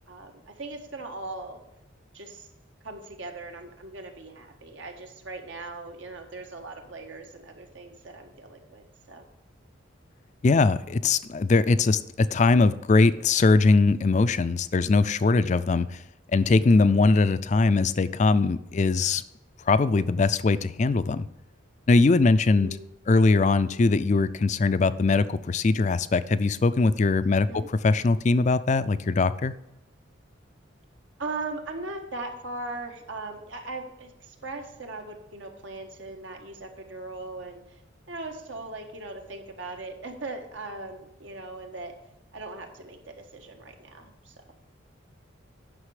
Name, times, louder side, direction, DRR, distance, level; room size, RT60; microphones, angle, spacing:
voice 1, 0.1-1.6 2.1-2.5 2.8-9.2 22.5-22.9 23.6-23.8 27.3-27.7 31.2-37.6 38.1-41.9 42.3-44.3, right 2 dB, 80° right, 4 dB, 1.5 m, -39 dB
voice 2, 10.4-16.0 16.3-19.2 19.7-21.3 21.9-22.8 23.1-27.5 27.8-29.5, left 3 dB, 35° left, 14 dB, 0.4 m, -21 dB
9.7 x 5.9 x 4.9 m, 0.90 s
head